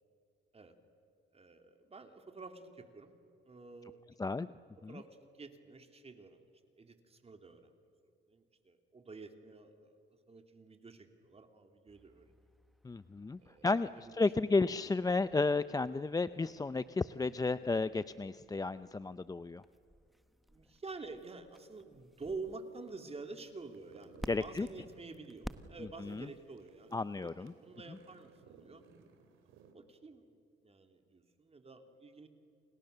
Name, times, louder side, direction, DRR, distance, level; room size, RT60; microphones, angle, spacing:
voice 1, 1.3-3.1 3.4-4.0 4.9-6.4 6.7-7.7 8.3-12.3 13.4-14.2 20.5-26.9 27.2-28.8 29.6-32.3, right 3 dB, 30° right, 6 dB, 2.8 m, -49 dB
sound 1, 11.9-26.2, equal, ahead, 1.2 m, -54 dB
voice 2, 12.8-19.6 24.3-24.7 26.0-26.3 26.9-27.5, left 3 dB, 20° left, 14 dB, 0.6 m, -33 dB
sound 2, 23.4-29.7, right 5 dB, 90° right, 3.3 m, -60 dB
29.5 x 28.0 x 6.8 m, 2.5 s
cardioid pair, 90°, 20 cm